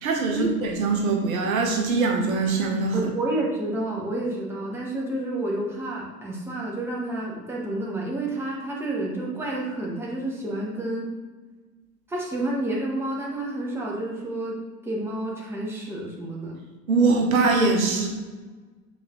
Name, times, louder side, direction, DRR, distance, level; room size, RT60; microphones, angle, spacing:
voice 1, 0.0-2.9 16.9-18.1, right 3 dB, 55° right, 1 dB, 1.2 m, -22 dB
voice 2, 2.9-11.1 12.1-16.6, right 1 dB, 5° right, -4 dB, 1.3 m, -29 dB
7.6 x 4.1 x 3.1 m, 1.3 s
figure-of-eight pair, 90°, 49 cm